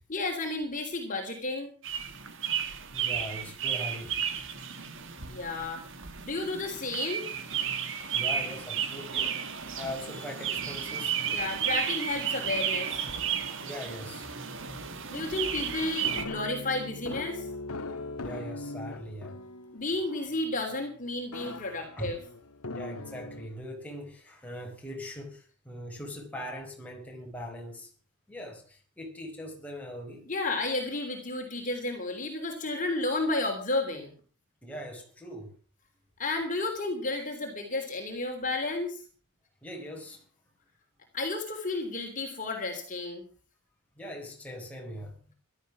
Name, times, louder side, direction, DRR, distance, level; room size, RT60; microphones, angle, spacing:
voice 1, 0.1-1.7 5.3-5.8 6.2-7.3 11.3-13.1 15.1-17.5 19.7-22.2 30.3-34.1 36.2-39.0 41.1-43.2, left 2 dB, 35° left, 3.3 m, -32 dB
sound 1, 1.8-16.2, right 8 dB, 55° right, 2.1 m, -33 dB
voice 2, 2.9-4.2 8.1-9.4 9.8-11.2 13.6-14.3 18.2-19.4 22.0-22.2 22.7-27.9 28.3-30.3 34.6-35.5 39.6-40.2 44.0-45.2, equal, 5° left, 4.7 m, -41 dB
sound 2, 14.5-20.6 21.3-23.5, left 2 dB, 80° left, 1.6 m, -41 dB
16.5 x 12.5 x 6.1 m
head